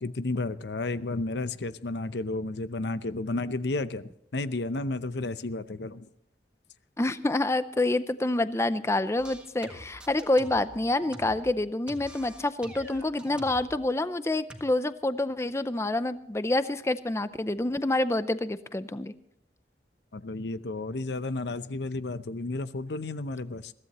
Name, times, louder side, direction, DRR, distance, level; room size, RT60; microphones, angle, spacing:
voice 1, 0.0-6.1 20.1-23.7, left 2 dB, 75° left, 13 dB, 0.7 m, -32 dB
voice 2, 7.0-19.1, left 2 dB, 15° left, 13 dB, 0.5 m, -27 dB
sound 1, 9.2-11.6 11.9-13.8 14.5-14.6, right 1 dB, 5° right, 1.6 m, -46 dB
22.0 x 15.5 x 3.0 m, 0.75 s
head